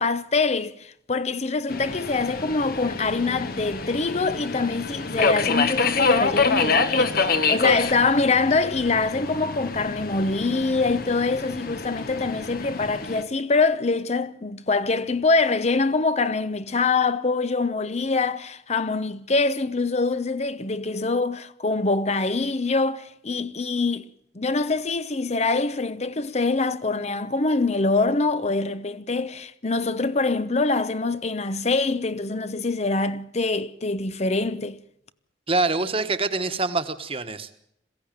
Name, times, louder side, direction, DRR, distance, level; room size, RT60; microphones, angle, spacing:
voice 1, 0.0-24.1 24.3-34.8, left 3 dB, 40° left, 0.8 m, -24 dB
Subway metro underground, 1.7-13.2, left 4 dB, 55° left, 1.4 m, -26 dB
voice 2, 35.5-37.5, right 3 dB, 35° right, 1.4 m, -25 dB
22.0 x 16.0 x 9.2 m
head